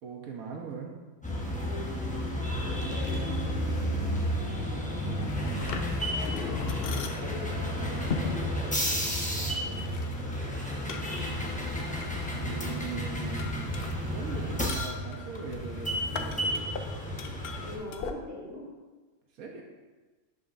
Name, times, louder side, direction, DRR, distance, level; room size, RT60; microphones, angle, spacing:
voice 1, 0.0-0.9 12.4-16.7 19.4-19.6, right 5 dB, 80° right, 1 dB, 1.3 m, -40 dB
sound 1, 1.2-17.8, equal, 5° left, 0.8 m, -32 dB
voice 2, 1.5-2.2 2.5-6.8 7.2-10.9 17.6-18.7, left 1 dB, 10° right, -7 dB, 2.1 m, -46 dB
sound 2, 4.9-18.1, left 5 dB, 65° left, 0.6 m, -40 dB
11.0 x 5.4 x 2.6 m, 1.3 s
omnidirectional pair, 1.5 m